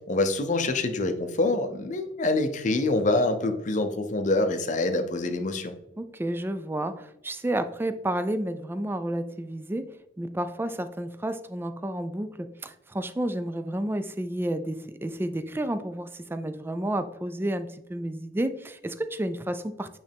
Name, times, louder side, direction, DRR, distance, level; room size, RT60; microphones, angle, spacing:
voice 1, 0.1-5.7, left 2 dB, 45° left, 8 dB, 0.6 m, -25 dB
voice 2, 6.0-9.9 10.2-19.9, right 1 dB, 10° right, 10 dB, 0.3 m, -31 dB
8.7 x 3.2 x 3.4 m, 0.85 s
head